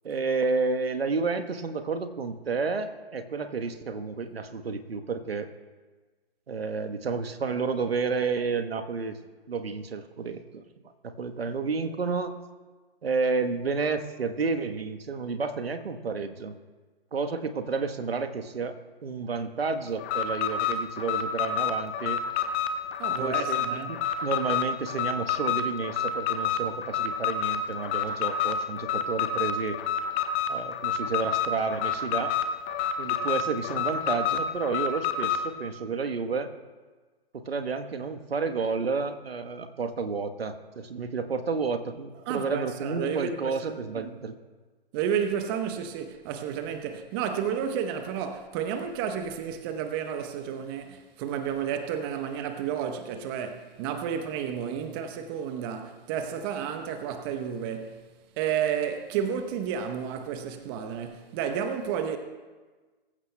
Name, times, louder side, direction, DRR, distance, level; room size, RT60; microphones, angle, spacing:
voice 1, 0.0-5.5 6.5-9.2 9.5-10.6 11.0-12.4 13.0-16.6 17.1-22.2 23.1-29.8 30.5-32.3 33.0-36.5 37.3-44.4, right 4 dB, 75° right, 1.2 m, -31 dB
Alarm, 20.0-35.5, left 7 dB, 15° left, 0.4 m, -28 dB
voice 2, 23.0-24.0 42.3-44.1 44.9-58.0 58.4-62.2, right 8 dB, 25° right, 0.8 m, -31 dB
23.0 x 15.0 x 2.2 m
figure-of-eight pair, 130°, 30 cm